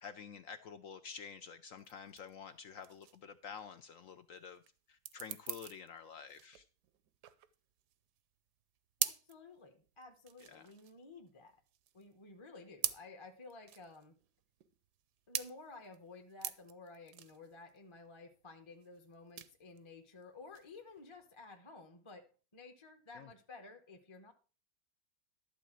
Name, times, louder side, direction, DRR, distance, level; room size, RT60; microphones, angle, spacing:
voice 1, 0.0-4.6 4.9-6.7 10.5-10.6 23.1-23.3, left 6 dB, 65° left, 10 dB, 0.8 m, -49 dB
sound 1, 1.8-21.6, right 11 dB, 75° right, 1.2 m, -45 dB
voice 2, 9.0-11.6 11.9-14.2 15.3-22.3 22.5-24.3, left 3 dB, 25° left, 4 dB, 0.8 m, -54 dB
11.5 x 4.1 x 7.5 m, 0.37 s
omnidirectional pair, 1.8 m